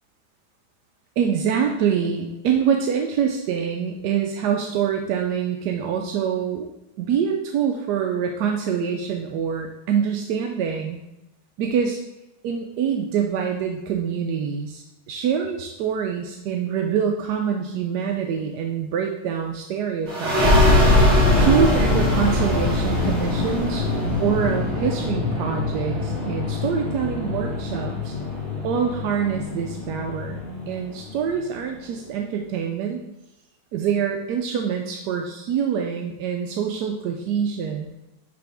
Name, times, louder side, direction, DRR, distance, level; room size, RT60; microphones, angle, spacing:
voice 1, 1.2-6.7 7.0-11.0 11.6-12.0 12.4-20.7 21.4-23.8 24.2-28.1 28.6-33.0 33.7-37.9, right 7 dB, 70° right, 2 dB, 1.0 m, -25 dB
sound 1, 20.1-31.3, left 2 dB, 50° right, 3.2 m, -22 dB
9.9 x 3.4 x 3.5 m, 0.91 s
omnidirectional pair, 2.1 m